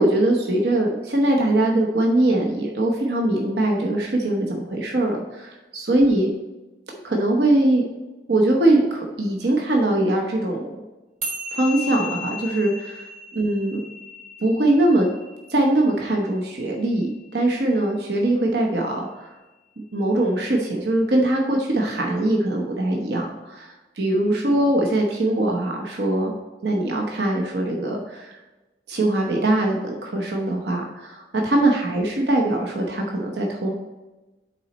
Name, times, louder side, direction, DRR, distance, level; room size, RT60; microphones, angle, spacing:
voice 1, 0.0-6.3 7.0-7.8 8.3-10.7 11.5-13.1 13.3-13.8 14.4-15.1 15.5-19.3 19.9-26.3 26.6-28.4 28.9-33.7, right 1 dB, 65° right, 0 dB, 0.9 m, -22 dB
sound 1, 11.2-17.8, left 2 dB, 40° right, 1.5 m, -36 dB
8.7 x 4.2 x 4.1 m, 1.1 s
head